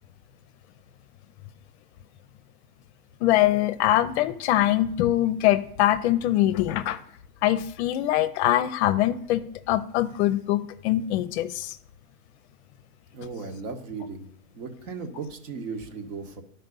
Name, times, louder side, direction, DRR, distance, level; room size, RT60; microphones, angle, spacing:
voice 1, 3.2-7.0 7.4-11.8, left 13 dB, 50° left, 13 dB, 0.6 m, -23 dB
voice 2, 13.1-14.2 14.5-16.4, right 4 dB, 55° right, 4 dB, 1.7 m, -36 dB
11.5 x 4.3 x 5.3 m, 0.65 s
hypercardioid pair, 130°, 45 cm